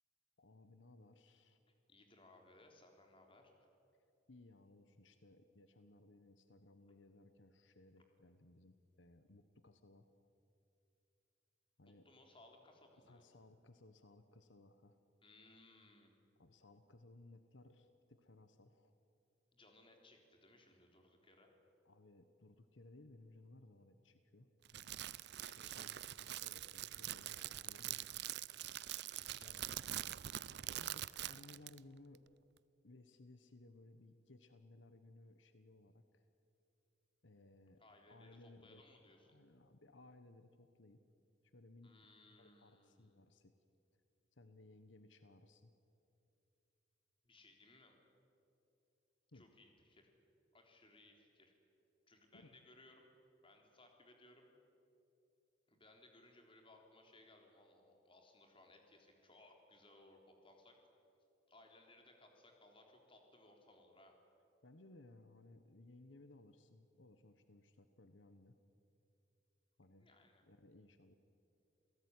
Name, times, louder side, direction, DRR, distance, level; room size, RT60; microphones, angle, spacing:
voice 1, 0.4-1.6 4.3-10.1 11.8-12.1 13.0-15.0 16.4-18.9 21.8-25.1 25.6-28.1 29.4-29.6 30.7-32.2 32.8-36.3 37.2-37.8 38.1-38.8 39.3-41.0 41.4-41.9 42.4-43.5 44.3-45.7 49.3-49.5 52.3-52.6 64.6-68.6 69.8-70.1 70.5-71.1, left 2 dB, 80° left, 10 dB, 1.2 m, -62 dB
voice 2, 1.9-3.7 8.0-8.1 11.8-13.2 15.2-16.1 19.5-21.5 25.4-25.9 28.8-29.8 37.8-39.4 41.8-43.2 47.2-48.0 49.3-50.1 50.5-51.5 52.1-53.1 53.4-54.5 55.7-60.8 61.5-64.2 70.0-70.4, left 2 dB, 30° left, 3 dB, 3.7 m, -64 dB
Crackle, 24.6-31.8, right 13 dB, 60° right, 0.5 m, -45 dB
28.0 x 17.5 x 9.7 m, 2.8 s
head